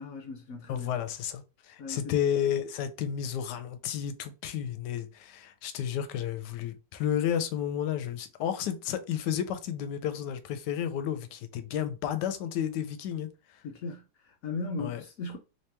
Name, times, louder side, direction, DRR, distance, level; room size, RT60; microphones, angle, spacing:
voice 1, 0.0-0.9 1.8-2.1 13.6-15.4, left 3 dB, 70° left, 0.9 m, -38 dB
voice 2, 0.7-13.6 14.8-15.0, left 9 dB, 85° left, 1.2 m, -32 dB
3.1 x 2.9 x 3.3 m
omnidirectional pair, 1.8 m